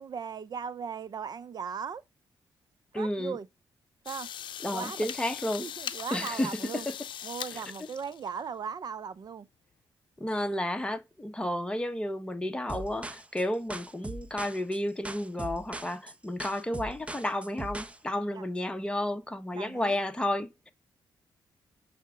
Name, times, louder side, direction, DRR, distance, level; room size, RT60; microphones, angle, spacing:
voice 1, 0.0-2.0 2.9-3.5 4.0-4.3 4.7-5.1 5.6-6.9 7.2-9.5 18.3-18.4 19.5-20.0, right 6 dB, 50° right, 0.7 m, -38 dB
voice 2, 2.9-3.4 4.6-5.7 6.1-6.6 10.2-20.7, left 1 dB, 10° left, 1.2 m, -32 dB
sound 1, 4.1-8.4, left 9 dB, 70° left, 0.6 m, -40 dB
sound 2, 12.7-18.0, right 2 dB, 15° right, 0.8 m, -40 dB
6.6 x 3.5 x 5.0 m
cardioid pair, 80°, 9 cm